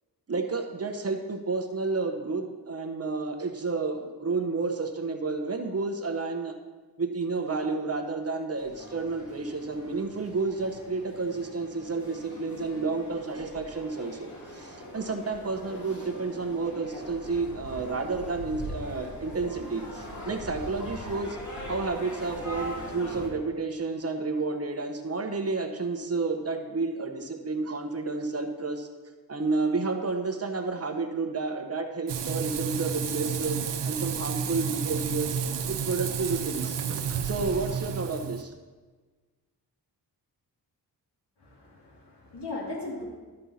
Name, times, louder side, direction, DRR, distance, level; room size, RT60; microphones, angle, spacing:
voice 1, 0.3-6.5 7.0-21.4 21.7-28.9 29.3-33.6 33.9-35.3 35.6-38.5, right 3 dB, 35° right, 5 dB, 0.9 m, -31 dB
sound 1, 8.6-23.3, equal, 45° left, 2.8 m, -41 dB
Frying (food), 32.1-38.4, right 7 dB, 85° right, 0.8 m, -31 dB
voice 2, 41.4-43.0, left 2 dB, 75° left, -3 dB, 2.8 m, -38 dB
12.5 x 5.4 x 4.2 m, 1.3 s
cardioid pair, 85°, 41 cm